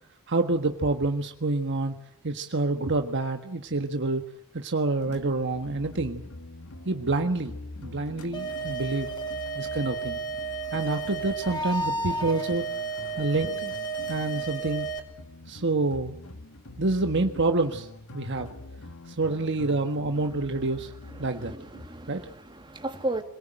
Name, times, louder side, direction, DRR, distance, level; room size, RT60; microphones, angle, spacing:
voice 1, 0.3-1.9 2.2-4.2 4.5-6.2 6.8-7.5 7.8-9.1 9.5-10.2 10.7-12.7 13.2-13.7 14.1-14.9 15.5-16.2 16.8-17.9 18.1-18.5 19.1-20.9 21.2-21.5 22.1-22.2, right 2 dB, 55° right, 5 dB, 1.5 m, -27 dB
sound 1, 5.0-21.9, left 2 dB, 70° left, 1.9 m, -45 dB
sound 2, 8.3-15.0, right 4 dB, 20° left, 4.1 m, -32 dB
voice 2, 21.1-23.2, right 1 dB, 20° right, 4 dB, 2.9 m, -35 dB
26.5 x 19.0 x 9.0 m, 0.73 s
head